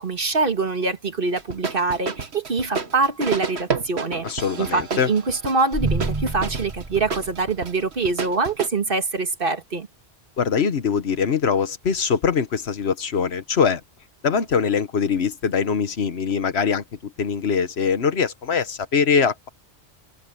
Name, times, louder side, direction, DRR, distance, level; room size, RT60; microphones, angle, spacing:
voice 1, 0.0-4.3 4.6-9.9, right 3 dB, 60° right, 2.0 m, -24 dB
sound 1, 1.4-8.7, right 4 dB, 85° right, 1.8 m, -30 dB
voice 2, 4.2-5.1 10.4-13.8 14.2-19.5, left 6 dB, 80° left, 1.4 m, -22 dB
sound 2, 5.7-8.0, right 3 dB, 25° right, 1.5 m, -28 dB
omnidirectional pair, 1.1 m